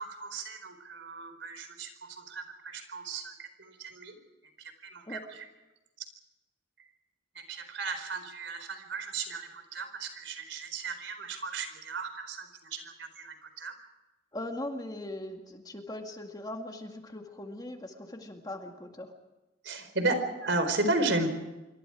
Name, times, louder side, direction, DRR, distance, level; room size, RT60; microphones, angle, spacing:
voice 1, 0.0-4.2 4.6-5.2 7.3-13.7 19.6-21.3, right 2 dB, 70° right, 8 dB, 4.5 m, -34 dB
voice 2, 14.3-19.1, left 1 dB, 20° left, 4 dB, 2.2 m, -40 dB
27.0 x 24.5 x 4.9 m, 1.0 s
head